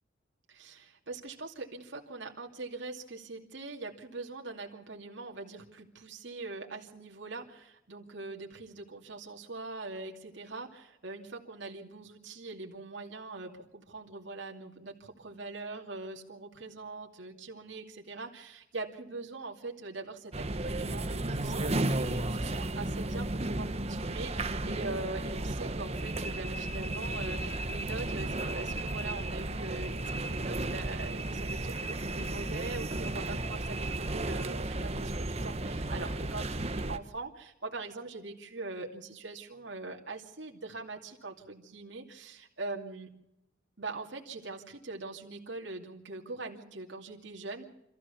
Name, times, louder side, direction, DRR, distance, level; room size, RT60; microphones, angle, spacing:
voice 1, 0.5-43.1 43.8-47.6, right 3 dB, 70° right, 1 dB, 2.6 m, -42 dB
sound 1, 20.3-37.0, right 2 dB, 35° right, 1.0 m, -34 dB
26.0 x 14.0 x 7.0 m, 0.88 s
head